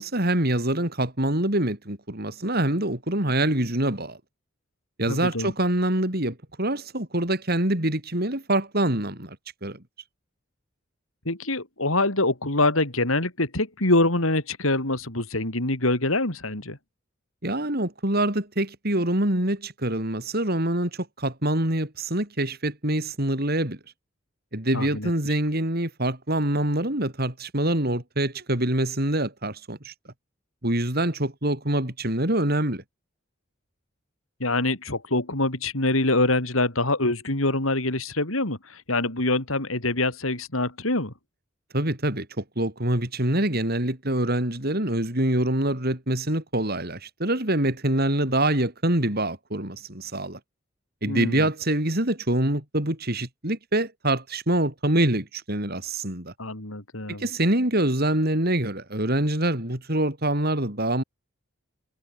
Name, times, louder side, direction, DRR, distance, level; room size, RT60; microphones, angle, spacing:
voice 1, 0.0-4.2 5.0-9.4 9.6-9.8 17.4-23.8 24.5-29.9 30.6-32.8 41.7-50.4 51.0-56.3 57.2-61.0, right 1 dB, 50° right, 5.0 m, -25 dB
voice 2, 5.1-5.5 11.3-16.8 24.7-25.1 34.4-41.1 51.1-51.5 56.4-57.2, left 2 dB, 85° left, 5.4 m, -25 dB
head